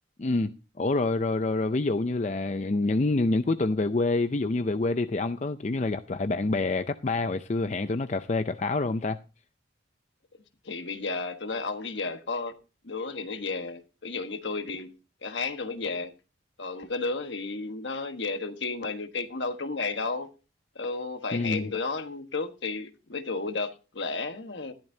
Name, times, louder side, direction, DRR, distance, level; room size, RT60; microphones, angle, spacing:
voice 1, 0.2-9.2 21.3-21.7, left 2 dB, 35° left, 0.5 m, -27 dB
voice 2, 10.6-12.5 12.8-14.9 15.2-16.1 16.6-20.3 20.7-24.7, left 3 dB, 65° left, 1.3 m, -33 dB
14.0 x 12.0 x 2.8 m
head